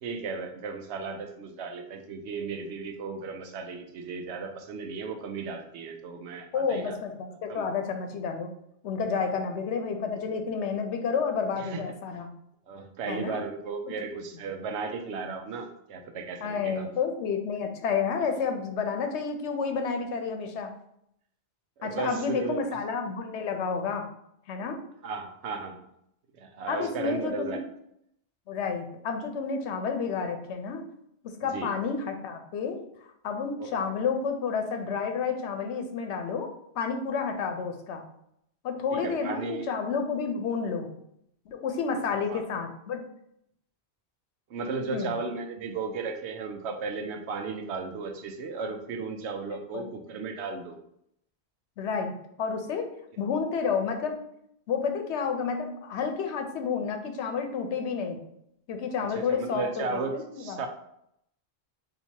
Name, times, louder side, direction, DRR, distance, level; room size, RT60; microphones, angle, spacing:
voice 1, 0.0-7.0 7.5-7.7 11.6-11.8 12.7-16.9 21.8-22.8 25.0-25.8 26.4-27.6 31.4-31.7 33.6-33.7 38.9-39.7 42.1-42.4 44.5-50.8 59.1-60.7, right 4 dB, 80° right, 5 dB, 0.9 m, -35 dB
voice 2, 6.5-8.5 8.8-12.3 13.1-13.4 13.8-14.1 16.4-20.7 21.8-24.1 24.5-24.8 26.7-27.6 28.5-30.8 31.4-32.8 33.2-38.0 38.6-40.9 41.5-43.0 44.9-45.1 49.7-49.9 51.8-52.9 53.2-54.2 54.7-58.2 58.7-60.6, left 5 dB, 85° left, 5 dB, 0.9 m, -30 dB
4.4 x 2.7 x 2.7 m, 0.75 s
omnidirectional pair, 1.1 m